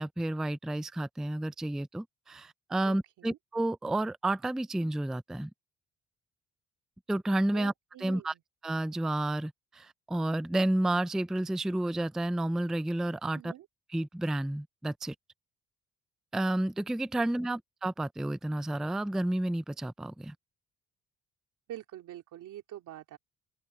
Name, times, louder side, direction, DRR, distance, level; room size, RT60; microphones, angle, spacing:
voice 1, 0.0-5.5 7.1-7.7 8.0-8.3 8.6-13.5 13.9-15.1 16.3-20.3, right 1 dB, ahead, 0.4 m, -31 dB
voice 2, 2.9-3.4 7.5-8.4 13.3-13.7 17.1-17.5 21.7-23.2, right 12 dB, 85° right, 3.5 m, -46 dB
cardioid pair, 90°, 30 cm